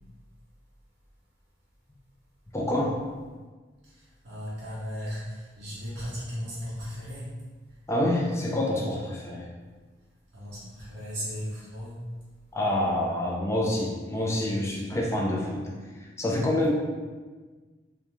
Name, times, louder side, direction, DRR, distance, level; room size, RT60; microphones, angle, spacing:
voice 1, 2.5-3.0 7.9-9.5 12.5-15.6 16.2-16.7, left 1 dB, 15° left, -3 dB, 0.4 m, -27 dB
voice 2, 3.8-7.3 10.3-12.1, equal, 90° right, -10 dB, 0.7 m, -36 dB
2.4 x 2.2 x 3.0 m, 1.4 s
head